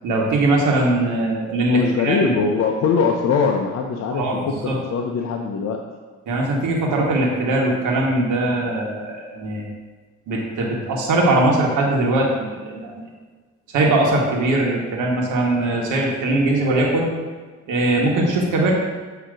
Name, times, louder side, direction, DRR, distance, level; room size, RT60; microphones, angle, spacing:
voice 1, 0.0-2.3 4.1-4.8 6.3-9.7 10.3-13.0 13.7-17.1 17.7-18.7, right 2 dB, 80° right, -2 dB, 1.1 m, -20 dB
voice 2, 1.7-4.2 4.6-5.8, left 5 dB, 60° left, 1 dB, 0.6 m, -21 dB
7.5 x 2.8 x 4.9 m, 1.4 s
cardioid pair, 90°, 30 cm